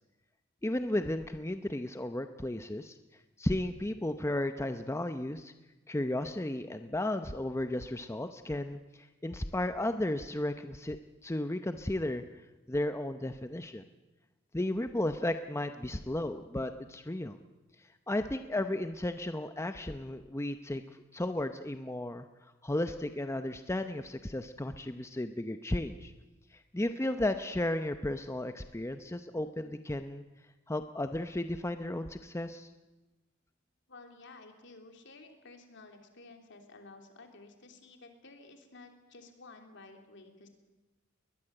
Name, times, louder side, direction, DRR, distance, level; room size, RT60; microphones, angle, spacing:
voice 1, 0.6-3.0 3.4-5.5 5.9-12.2 12.7-13.8 14.5-17.4 18.1-20.8 21.1-22.3 22.6-26.1 26.5-30.2 30.7-32.7, left 1 dB, 15° left, 9 dB, 0.7 m, -34 dB
voice 2, 33.9-40.5, left 3 dB, 60° left, 5 dB, 3.3 m, -53 dB
21.0 x 21.0 x 7.8 m, 1.1 s
head